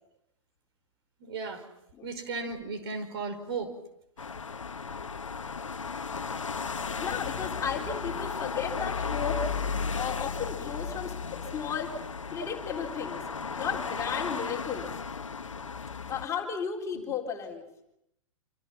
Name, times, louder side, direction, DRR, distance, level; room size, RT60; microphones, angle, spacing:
voice 1, 1.2-1.6 2.0-3.7, right 4 dB, 50° right, 7 dB, 5.2 m, -35 dB
sound 1, 4.2-16.3, left 5 dB, 75° left, 1.2 m, -35 dB
voice 2, 6.8-9.4 9.9-11.9 12.3-13.2 13.6-14.9 16.1-17.6, left 7 dB, 20° left, 0 dB, 4.0 m, -34 dB
28.0 x 27.0 x 5.8 m, 0.79 s
figure-of-eight pair, 110°, 16 cm